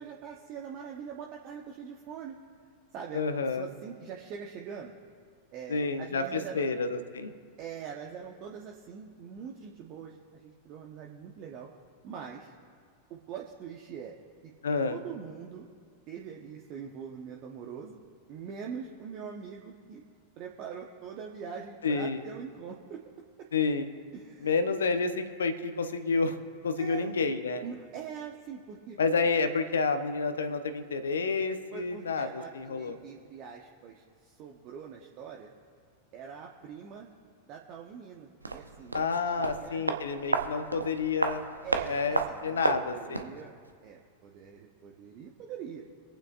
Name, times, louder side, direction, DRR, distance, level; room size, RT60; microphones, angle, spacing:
voice 1, 0.0-2.4 2.9-4.9 5.5-6.6 7.6-11.7 12.0-12.5 13.1-14.2 14.4-14.5 14.9-15.7 16.1-18.0 18.3-20.0 20.4-23.0 23.4-23.5 24.1-24.8 26.8-27.1 27.6-29.0 31.7-35.5 36.1-37.1 37.4-39.8 41.6-43.5 43.8-45.8, right 7 dB, 40° right, 0 dB, 1.1 m, -43 dB
voice 2, 3.1-3.7 5.7-7.3 14.6-15.0 21.8-22.2 23.5-23.9 24.4-26.4 26.6-27.6 29.0-32.3 32.5-33.0 38.9-41.4 41.9-43.3, left 4 dB, 70° left, 9 dB, 1.0 m, -29 dB
sound 1, 38.4-43.4 43.7-43.8, right 3 dB, 80° right, 0.8 m, -32 dB
26.5 x 8.9 x 2.6 m, 2.1 s
figure-of-eight pair, 90°, 0 cm